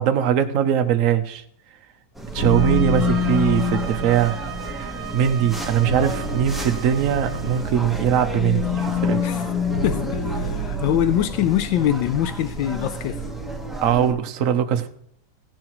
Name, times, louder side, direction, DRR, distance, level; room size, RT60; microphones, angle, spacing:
voice 1, 0.0-1.4 2.3-4.4 4.7-9.2 13.8-14.9, right 9 dB, 60° right, 0.9 m, -21 dB
sound 1, 2.1-14.1, right 2 dB, ahead, 0.5 m, -33 dB
sound 2, 2.3-7.7, right 11 dB, 85° right, 1.5 m, -37 dB
sound 3, 2.4-11.5, left 3 dB, 50° left, 1.5 m, -27 dB
voice 2, 9.8-13.2, left 11 dB, 85° left, 1.3 m, -23 dB
16.0 x 10.5 x 3.0 m
omnidirectional pair, 2.0 m